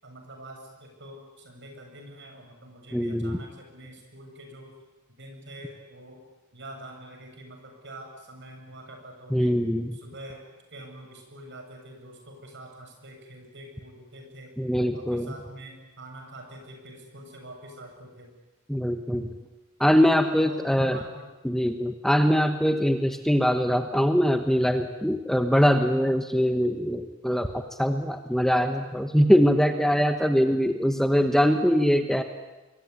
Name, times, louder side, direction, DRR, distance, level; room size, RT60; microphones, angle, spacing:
voice 1, 0.0-4.7 5.2-6.2 6.5-9.5 9.9-10.4 10.7-14.5 14.9-18.3 19.1-19.4 20.1-21.3 23.0-23.1 30.3-30.4, right 1 dB, 55° right, 3 dB, 7.8 m, -45 dB
voice 2, 2.9-3.4 9.3-9.9 14.6-15.3 18.7-19.3 19.8-21.0 21.4-32.2, equal, ahead, 6 dB, 1.2 m, -22 dB
26.5 x 22.5 x 9.8 m, 1.1 s
head